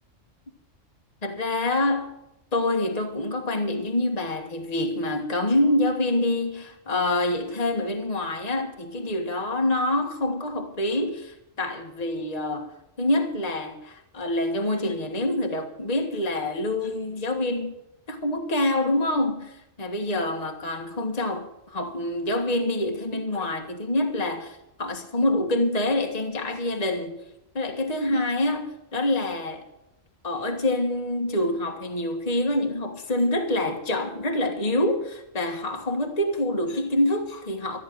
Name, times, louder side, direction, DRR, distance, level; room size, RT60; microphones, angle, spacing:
voice 1, 1.2-2.1 2.5-17.7 18.1-27.2 27.5-29.6 30.2-37.8, left 1 dB, 30° left, 1.6 m, -26 dB
14.0 x 10.5 x 6.7 m
omnidirectional pair, 1.3 m